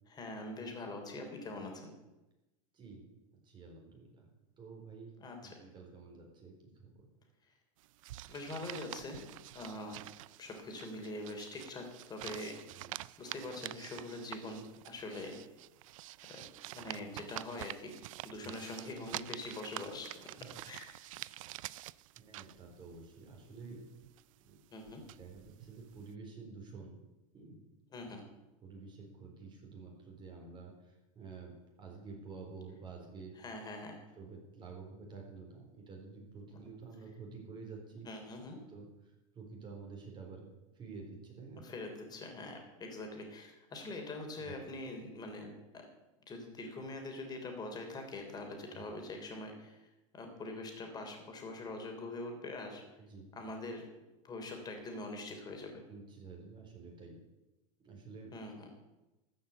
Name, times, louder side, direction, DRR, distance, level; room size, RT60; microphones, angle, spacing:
voice 1, 0.1-1.9 5.2-5.6 8.3-9.3 9.5-10.0 10.4-12.6 13.2-15.4 16.3-16.4 16.7-17.9 18.2-20.3 20.6-21.0 24.7-25.0 27.9-28.2 33.3-34.0 38.0-38.6 41.6-45.8 46.3-49.9 50.1-52.8 53.3-53.9 54.2-55.8 58.3-58.7, left 2 dB, 25° left, 3 dB, 3.3 m, -43 dB
voice 2, 3.4-4.3 4.6-5.1 5.4-7.0 12.7-12.9 18.6-18.7 20.4-20.5 21.2-21.3 22.2-23.8 24.4-24.6 25.2-27.0 27.3-27.6 28.6-31.5 31.8-33.3 34.2-38.1 38.5-40.5 40.7-41.6 44.4-44.6 48.7-48.8 53.0-53.3 55.9-57.2 57.8-58.3, right 4 dB, 30° right, 0 dB, 4.2 m, -50 dB
sound 1, 7.8-23.7 24.0-26.1, right 16 dB, 80° right, 0.4 m, -48 dB
13.5 x 6.5 x 8.5 m, 1.0 s
supercardioid pair, 135°, 17 cm